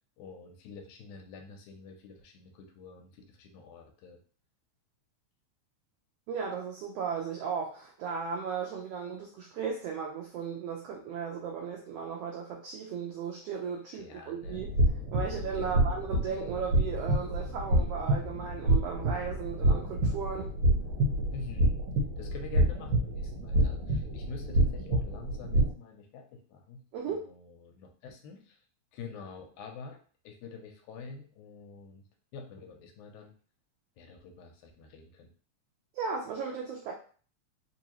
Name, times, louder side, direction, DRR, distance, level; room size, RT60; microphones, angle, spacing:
voice 1, 0.2-4.2 14.0-14.6 15.5-16.1 21.3-21.8 22.2-28.6 28.9-30.0 30.2-32.0 32.3-33.3 34.0-35.3, left 4 dB, 80° left, 4 dB, 2.0 m, -47 dB
voice 2, 6.3-14.7 15.1-20.5 26.9-27.3 35.9-36.9, right 6 dB, 90° right, 0 dB, 1.3 m, -36 dB
sound 1, 14.4-25.7, right 1 dB, 70° right, 1.9 m, -28 dB
4.6 x 2.7 x 2.9 m, 0.41 s
omnidirectional pair, 3.5 m